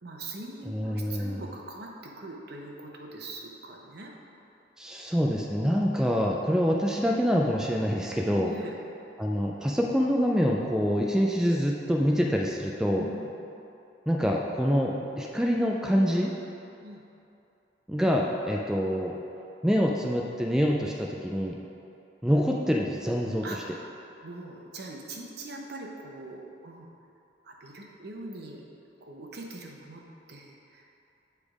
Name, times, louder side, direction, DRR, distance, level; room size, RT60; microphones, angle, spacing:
voice 1, 0.0-4.1 8.3-8.8 13.0-13.3 16.8-17.0 23.4-23.6 24.2-26.9 27.4-28.6 29.0-30.0 30.3-30.8, right 2 dB, 60° right, 0 dB, 0.8 m, -42 dB
voice 2, 0.7-1.4 4.8-8.5 9.2-13.1 14.1-16.3 17.9-19.2 19.6-21.6 22.2-23.4, equal, 5° right, -1 dB, 0.3 m, -26 dB
8.3 x 3.4 x 4.9 m, 2.7 s
head